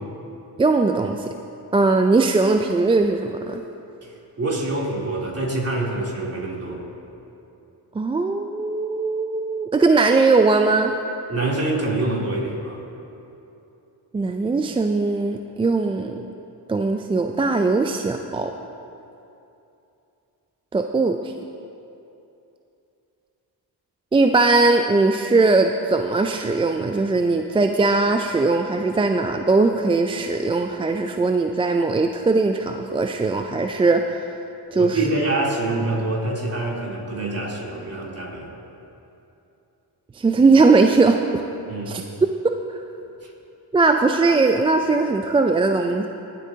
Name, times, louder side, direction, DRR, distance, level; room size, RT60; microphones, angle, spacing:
voice 1, 0.6-1.3 1.7-3.6 8.0-10.9 14.1-16.2 16.7-18.5 20.7-21.3 24.1-34.2 34.7-35.0 40.2-41.4 41.9-42.0 43.7-46.1, right 3 dB, 15° right, 5 dB, 0.3 m, -19 dB
voice 2, 4.0-6.8 11.3-12.8 34.7-38.5 41.7-41.9, right 2 dB, 35° right, -3 dB, 3.1 m, -26 dB
23.5 x 8.3 x 2.8 m, 2.8 s
supercardioid pair, 75°, 42 cm